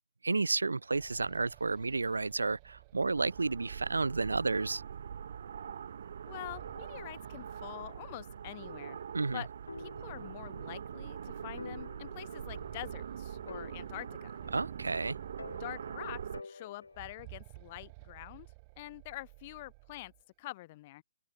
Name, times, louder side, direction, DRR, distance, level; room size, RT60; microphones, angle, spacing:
voice 1, 0.2-4.8 9.1-9.4 14.5-15.2, right 3 dB, 85° right, 1.2 m, -31 dB
sound 1, 0.6-4.4 6.2-8.4 8.7-8.8 9.7-9.8 10.2-10.4 12.0-16.2 16.8-20.2, right 28 dB, 30° right, 3.8 m, -54 dB
sound 2, 3.2-16.4, right 8 dB, 60° right, 5.2 m, -43 dB
voice 2, 6.3-9.0 9.3-9.5 9.8-14.3 15.6-18.5 18.8-20.1 20.4-21.0, left 18 dB, 35° left, 3.5 m, -45 dB
sound 3, 9.7-10.8 11.1-11.2 11.6-13.1 13.5-14.9 15.4-17.2, left 4 dB, 80° left, 4.7 m, -50 dB
open air
figure-of-eight pair, 140°, 0 cm